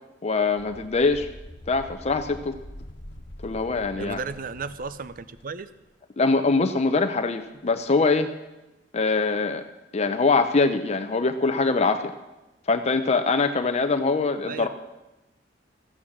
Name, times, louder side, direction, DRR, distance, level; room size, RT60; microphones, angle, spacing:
voice 1, 0.2-1.3 1.7-2.5 3.4-4.2 6.2-8.3 8.9-9.6 9.9-12.1 12.7-14.7, left 3 dB, 35° left, 8 dB, 0.6 m, -23 dB
sound 1, 0.6-5.5, left 1 dB, 85° left, 1.2 m, -44 dB
voice 2, 4.0-5.7 14.5-14.7, right 4 dB, 50° right, 13 dB, 0.6 m, -34 dB
14.5 x 8.7 x 7.2 m, 1.0 s
head